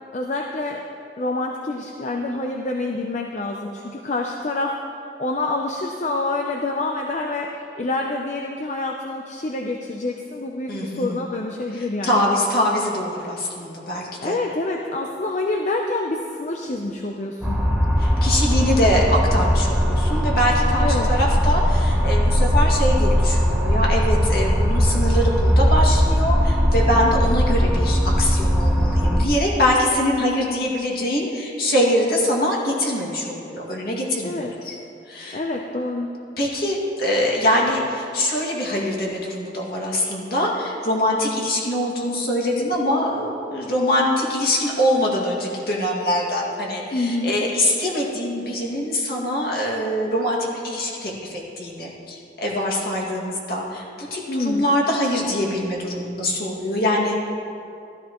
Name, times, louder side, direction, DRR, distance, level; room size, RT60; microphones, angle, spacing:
voice 1, 0.1-0.8 1.2-4.8 5.2-12.3 14.2-17.6 20.8-21.1 34.2-34.5 35.3-36.1 46.9-47.3 54.3-54.7, left 2 dB, 40° left, 1 dB, 0.6 m, -27 dB
voice 2, 10.7-11.2 11.7-14.4 18.0-34.8 35.1-35.4 36.4-57.3, left 1 dB, 60° left, -3 dB, 2.2 m, -23 dB
sound 1, 17.4-29.2, equal, 5° right, 1.0 m, -19 dB
13.5 x 13.5 x 3.1 m, 2.6 s
head